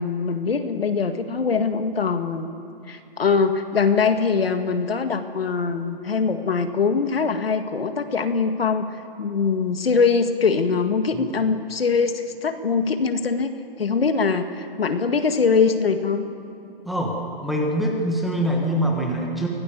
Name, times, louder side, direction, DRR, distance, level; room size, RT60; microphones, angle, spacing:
voice 1, 0.0-2.5 2.9-8.9 9.2-13.5 13.8-16.3, left 5 dB, 75° left, 7 dB, 2.0 m, -22 dB
voice 2, 16.8-19.5, equal, ahead, -1 dB, 1.3 m, -24 dB
24.5 x 17.5 x 7.1 m, 2.7 s
hypercardioid pair, 160°, 30 cm